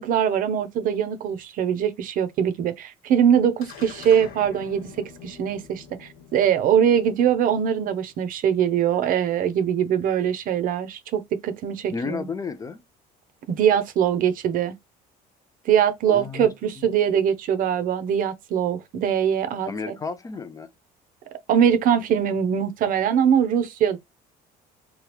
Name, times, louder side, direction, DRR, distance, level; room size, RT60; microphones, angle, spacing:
voice 1, 0.0-4.9 5.2-12.3 13.5-14.7 15.7-19.9 21.5-24.0, right 8 dB, 55° right, 0.6 m, -22 dB
sound 1, 3.6-8.2, left 6 dB, 70° left, 1.3 m, -45 dB
voice 2, 11.9-12.8 16.1-16.9 19.7-20.7, left 5 dB, 20° left, 0.4 m, -32 dB
2.9 x 2.3 x 3.1 m
cardioid pair, 140°, 17 cm